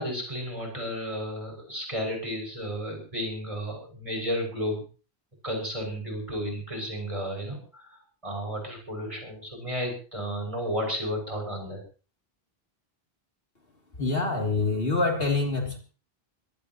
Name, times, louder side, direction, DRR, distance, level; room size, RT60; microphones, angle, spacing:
voice 1, 0.0-4.8 5.4-11.8, equal, 30° right, 1 dB, 6.9 m, -33 dB
voice 2, 14.0-15.8, left 3 dB, 65° left, 2 dB, 3.4 m, -25 dB
23.0 x 18.5 x 3.1 m, 0.37 s
omnidirectional pair, 1.0 m